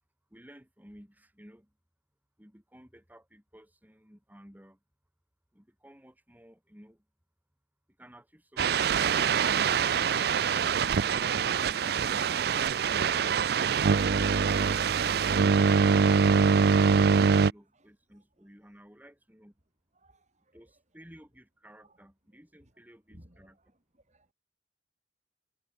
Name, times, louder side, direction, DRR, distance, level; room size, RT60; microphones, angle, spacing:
voice 1, 0.3-1.7 2.4-4.8 5.5-7.0 8.0-9.8 16.7-19.5 20.5-23.6, equal, 10° right, 5.8 m, -54 dB
sound 1, 8.6-17.5, right 6 dB, 60° right, 0.4 m, -24 dB
voice 2, 23.1-23.5 24.1-24.3, equal, 40° right, 5.7 m, -56 dB
head